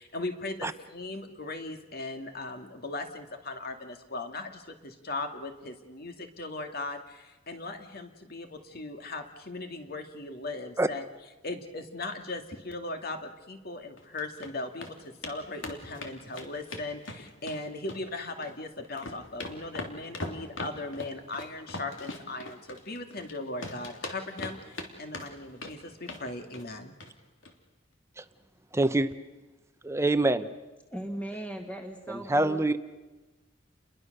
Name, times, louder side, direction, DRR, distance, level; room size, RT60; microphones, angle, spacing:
voice 1, 0.0-11.0 11.4-27.0, left 2 dB, 50° left, 6 dB, 2.3 m, -38 dB
sound 1, 14.0-14.5 14.8-14.9 15.2-15.4 15.6-17.6 17.9-18.6 18.8-23.3 23.6-24.9 25.1-25.7 26.0-26.3 26.5-26.7 27.0-27.1 27.4-27.5, left 2 dB, 75° left, 3.1 m, -39 dB
voice 2, 28.7-29.1 29.8-30.5 32.1-32.8, right 2 dB, 15° right, 11 dB, 0.8 m, -25 dB
voice 3, 30.9-32.8, right 1 dB, 5° left, 3 dB, 1.8 m, -38 dB
30.0 x 22.0 x 6.7 m, 1.2 s
head